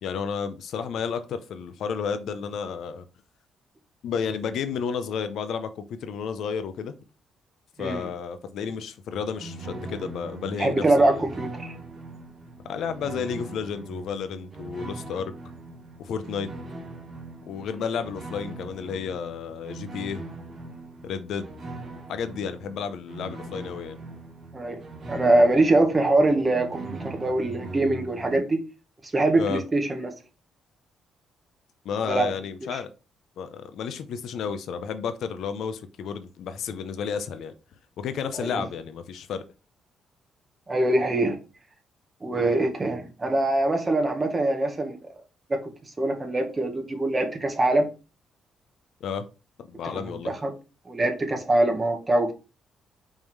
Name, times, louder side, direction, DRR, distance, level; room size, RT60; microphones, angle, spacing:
voice 1, 0.0-3.0 4.0-6.9 7.8-11.3 12.6-15.3 16.0-16.5 17.5-20.2 21.0-21.5 22.1-24.0 29.4-29.6 31.8-32.9 33.4-37.5 38.0-39.4 49.0-49.3 49.6-50.3, left 6 dB, 75° left, 0.7 m, -32 dB
sound 1, 9.1-28.4, right 2 dB, 40° right, 1.8 m, -41 dB
voice 2, 10.6-11.7 24.5-24.8 25.1-28.6 29.1-30.1 32.0-32.3 32.6-32.8 38.3-38.6 40.7-41.4 42.2-45.0 45.5-45.6 46.0-47.9 49.9-50.5 50.9-52.3, right 2 dB, 25° right, 1.7 m, -23 dB
5.4 x 3.7 x 4.7 m
cardioid pair, 90°, 0 cm